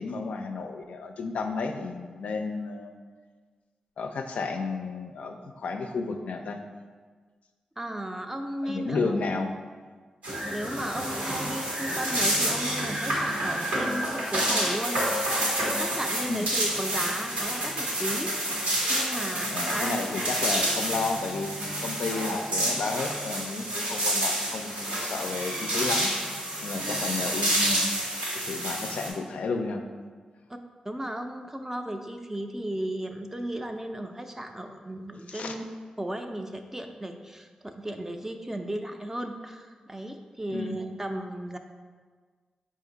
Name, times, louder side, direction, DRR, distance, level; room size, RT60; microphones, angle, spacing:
voice 1, 0.0-2.9 4.0-6.6 8.6-9.5 16.3-16.5 19.5-26.1 26.6-27.9 28.3-29.8 35.3-35.5 40.5-40.8, left 4 dB, 75° left, 5 dB, 0.3 m, -32 dB
voice 2, 7.8-9.2 10.5-15.1 15.7-18.3 18.9-20.0 30.8-35.6 36.0-41.6, right 1 dB, 15° right, 5 dB, 0.4 m, -35 dB
sound 1, 10.2-29.1, right 1 dB, 85° right, 1.3 m, -28 dB
4.8 x 2.6 x 3.9 m, 1.5 s
cardioid pair, 50°, 2 cm